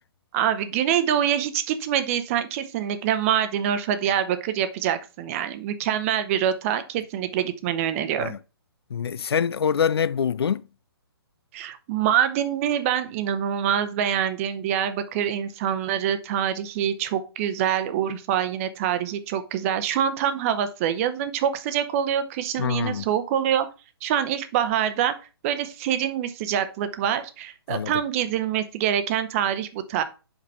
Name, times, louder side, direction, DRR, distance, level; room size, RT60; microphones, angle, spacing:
voice 1, 0.3-8.3 11.5-23.7 24.0-25.2 25.4-30.0, right 9 dB, 35° right, 0.8 m, -25 dB
voice 2, 8.9-10.7 22.6-23.1 27.7-27.9, left 7 dB, 70° left, 0.4 m, -25 dB
5.4 x 5.2 x 5.4 m
figure-of-eight pair, 130°, 13 cm